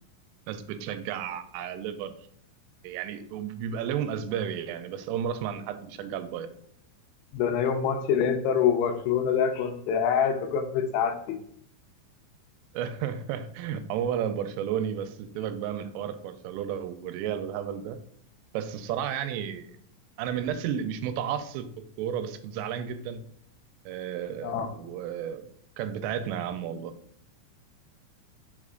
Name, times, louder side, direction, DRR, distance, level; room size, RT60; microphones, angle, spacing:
voice 1, 0.5-2.1 2.8-6.5 12.7-18.0 18.5-19.7 20.2-21.7 22.0-23.2 23.9-25.5 25.8-26.9, right 9 dB, 85° right, 9 dB, 3.1 m, -32 dB
voice 2, 7.3-11.2 24.4-24.7, left 7 dB, 80° left, 5 dB, 2.9 m, -25 dB
6.5 x 4.1 x 3.7 m, 0.66 s
omnidirectional pair, 5.7 m